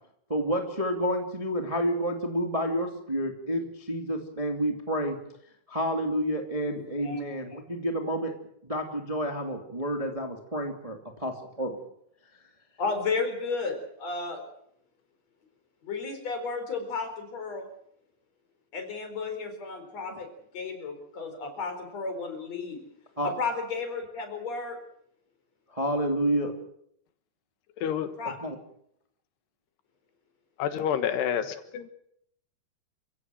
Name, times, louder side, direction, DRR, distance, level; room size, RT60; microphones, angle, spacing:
voice 1, 0.3-5.2 5.7-8.3 8.6-11.8 23.2-23.3 25.7-26.5 28.4-28.6, equal, 10° right, 4 dB, 1.8 m, -29 dB
voice 2, 6.7-7.2 12.8-14.4 15.8-17.7 18.7-20.3 20.5-22.8 23.2-24.8 28.2-28.4, left 4 dB, 40° left, 6 dB, 5.2 m, -33 dB
voice 3, 27.8-28.1 30.6-31.9, left 9 dB, 85° left, 10 dB, 3.5 m, -28 dB
28.5 x 16.5 x 7.8 m, 0.71 s
omnidirectional pair, 4.6 m